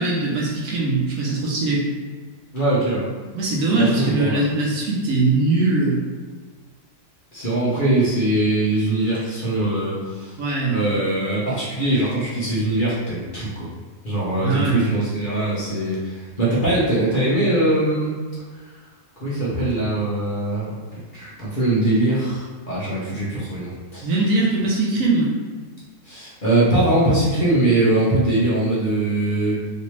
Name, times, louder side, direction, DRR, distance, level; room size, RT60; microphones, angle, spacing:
voice 1, 0.0-1.8 3.3-6.0 10.4-10.8 14.4-14.9 24.0-25.3, right 2 dB, 65° right, -4 dB, 1.0 m, -21 dB
voice 2, 2.5-3.1 3.8-4.5 7.3-10.4 10.7-13.7 14.0-18.1 19.2-20.7 21.1-24.1 26.0-29.6, right 1 dB, 40° left, -8 dB, 0.9 m, -21 dB
3.3 x 2.8 x 3.0 m, 1.5 s
omnidirectional pair, 1.6 m